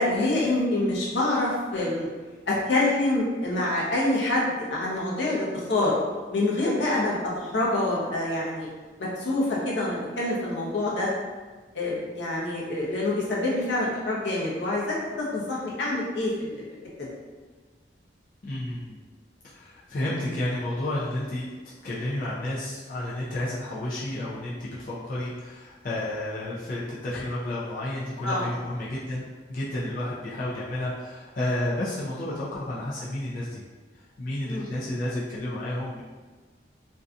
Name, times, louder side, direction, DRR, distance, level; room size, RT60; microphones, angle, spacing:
voice 1, 0.0-2.1 2.5-5.9 6.3-8.7 9.0-11.1 11.7-16.6 17.0-17.1 28.2-28.5 34.5-34.7, left 2 dB, 85° left, -5 dB, 0.7 m, -26 dB
voice 2, 18.4-19.0 19.4-29.2 29.5-33.6 34.0-36.0, left 1 dB, 50° left, -8 dB, 0.4 m, -31 dB
2.6 x 2.2 x 2.4 m, 1.4 s
head